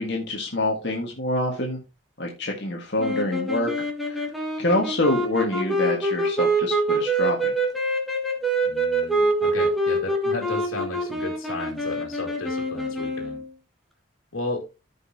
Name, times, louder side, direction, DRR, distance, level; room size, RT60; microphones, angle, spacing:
voice 1, 0.0-1.8 2.2-4.2 4.6-7.5, left 1 dB, 55° left, 0 dB, 1.7 m, -26 dB
sound 1, 3.0-13.5, right 1 dB, ahead, 1.8 m, -25 dB
voice 2, 8.6-13.4 14.3-14.7, left 2 dB, 85° left, -1 dB, 2.2 m, -34 dB
14.5 x 5.5 x 2.8 m, 0.27 s
head